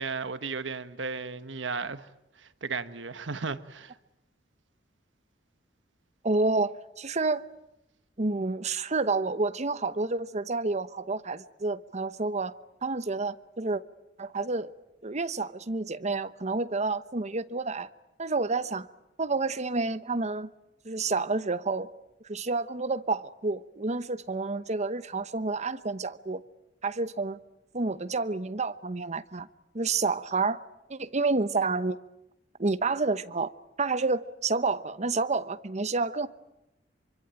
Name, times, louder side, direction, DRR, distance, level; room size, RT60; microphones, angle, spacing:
voice 1, 0.0-2.1 2.4-3.9, right 4 dB, 85° right, 1.2 m, -35 dB
voice 2, 6.2-7.4 8.2-12.5 12.8-13.8 14.2-14.7 15.0-17.9 18.2-18.9 19.2-20.5 20.8-21.9 22.2-26.4 26.8-27.4 27.7-29.5 29.7-30.6 30.9-32.0 32.6-33.5 33.8-36.3, right 3 dB, 40° right, 1.0 m, -29 dB
26.5 x 24.5 x 9.1 m
head